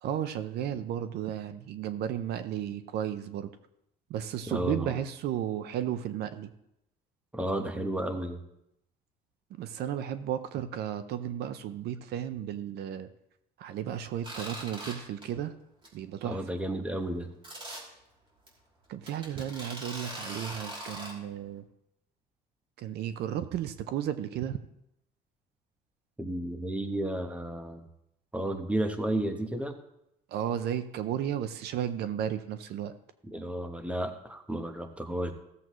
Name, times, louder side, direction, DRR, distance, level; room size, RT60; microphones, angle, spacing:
voice 1, 0.0-3.5 4.1-6.5 9.6-13.1 13.6-15.5 15.9-16.4 18.9-21.6 22.8-24.6 30.3-32.9, right 10 dB, 75° right, 11 dB, 0.7 m, -34 dB
voice 2, 4.5-4.9 7.3-8.4 16.2-17.3 26.2-27.8 28.3-29.8 33.3-35.3, right 1 dB, 5° right, 6 dB, 1.1 m, -32 dB
sound 1, 14.2-14.9 15.2-15.5 15.8-15.9 16.2-16.3 17.4-17.8 18.5-18.6 19.1-21.1, right 1 dB, 30° right, 3.1 m, -40 dB
15.5 x 7.6 x 3.1 m, 0.81 s
cardioid pair, 110°, 17 cm